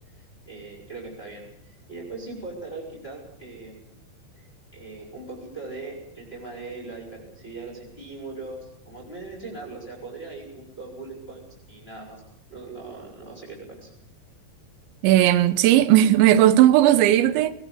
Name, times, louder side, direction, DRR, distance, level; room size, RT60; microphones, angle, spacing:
voice 1, 0.2-3.9 4.4-4.5 4.7-12.2 12.5-13.9, right 3 dB, 10° left, 5.9 m, -40 dB
voice 2, 15.0-17.5, right 13 dB, 85° right, 3.4 m, -16 dB
22.0 x 20.5 x 8.4 m
omnidirectional pair, 5.1 m